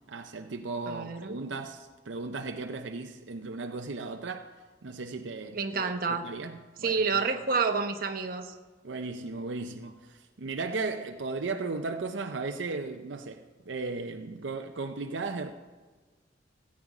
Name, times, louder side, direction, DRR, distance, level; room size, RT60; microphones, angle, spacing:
voice 1, 0.1-4.5 4.8-7.0 8.8-15.5, right 3 dB, 75° right, 0.6 m, -36 dB
voice 2, 0.9-1.4 5.5-6.3 6.8-8.5, right 4 dB, 50° right, 0.9 m, -29 dB
17.0 x 8.6 x 4.9 m
head